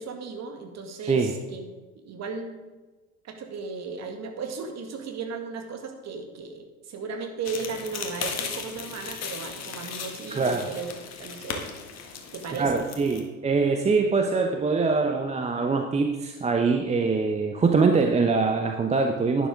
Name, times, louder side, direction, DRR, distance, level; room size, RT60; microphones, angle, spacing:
voice 1, 0.0-1.6 2.0-2.6 3.2-10.9 11.2-11.7 12.3-12.9, right 5 dB, 35° right, 4 dB, 2.0 m, -35 dB
sound 1, 7.5-13.2, left 6 dB, 35° left, 1.7 m, -37 dB
voice 2, 10.3-10.7 12.6-19.5, right 4 dB, 15° right, 4 dB, 0.8 m, -23 dB
11.5 x 10.0 x 3.7 m, 1.2 s
figure-of-eight pair, 70°, 44 cm